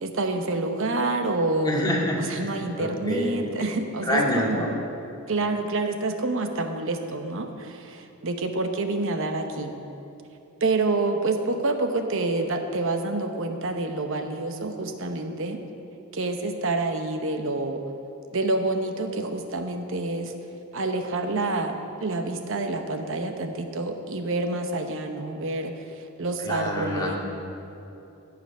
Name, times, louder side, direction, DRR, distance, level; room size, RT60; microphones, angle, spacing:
voice 1, 0.0-1.7 2.2-4.9 5.3-9.7 10.6-15.6 16.1-17.8 18.3-20.3 20.7-27.2, right 2 dB, 65° right, 6 dB, 0.9 m, -28 dB
voice 2, 1.6-3.3 4.1-4.7 26.4-27.2, equal, 20° left, -3 dB, 2.0 m, -27 dB
16.5 x 7.0 x 5.5 m, 2.8 s
head